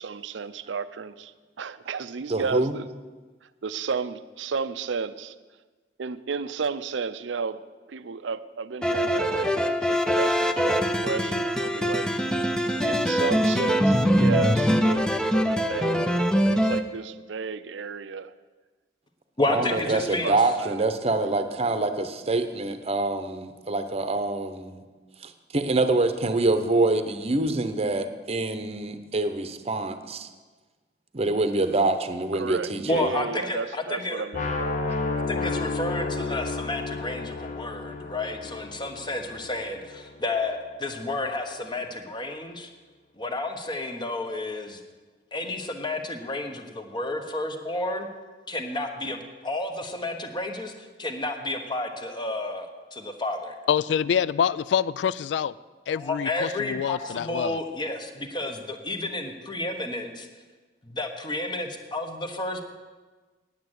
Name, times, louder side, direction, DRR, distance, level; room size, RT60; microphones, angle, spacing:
voice 1, 0.0-2.9 3.4-5.3 6.0-7.6 7.9-12.1 12.8-15.0 15.4-18.3 19.7-20.9 32.3-35.3, right 5 dB, 90° right, 0.5 m, -33 dB
voice 2, 2.3-2.7 12.6-12.8 19.4-24.8 25.2-30.3 31.1-32.8, right 2 dB, 35° right, 0.8 m, -25 dB
sound 1, 8.8-16.8, equal, 5° left, 0.5 m, -23 dB
voice 3, 19.4-20.4 32.9-34.2 35.3-42.7 43.2-44.8 45.3-48.1 48.5-53.6 55.9-60.3 60.8-62.6, left 2 dB, 25° left, 1.1 m, -31 dB
sound 2, 34.3-40.3, left 3 dB, 45° left, 0.8 m, -32 dB
voice 4, 53.7-55.5 55.9-57.6, left 8 dB, 70° left, 0.3 m, -26 dB
9.4 x 8.8 x 7.9 m
head